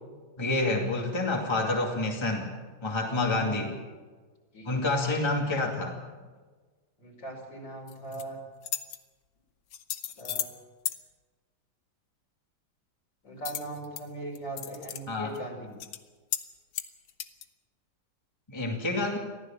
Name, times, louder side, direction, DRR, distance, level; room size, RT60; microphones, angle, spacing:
voice 1, 0.4-2.5 2.8-3.8 4.7-6.0 15.1-15.3 18.5-19.2, left 2 dB, 15° left, 0 dB, 2.4 m, -28 dB
voice 2, 3.3-3.7 4.5-4.9 7.0-8.4 10.2-10.5 13.2-15.7, right 2 dB, 60° left, 0 dB, 5.7 m, -40 dB
sound 1, 7.9-8.2 8.6-9.0 9.7-10.5 10.8-11.0 13.4-14.0 14.3-15.0 15.3-15.4 15.8-16.0 16.3-16.5 16.7-17.5, left 10 dB, 75° left, 1.8 m, -34 dB
24.0 x 15.0 x 7.4 m, 1.4 s
omnidirectional pair, 2.3 m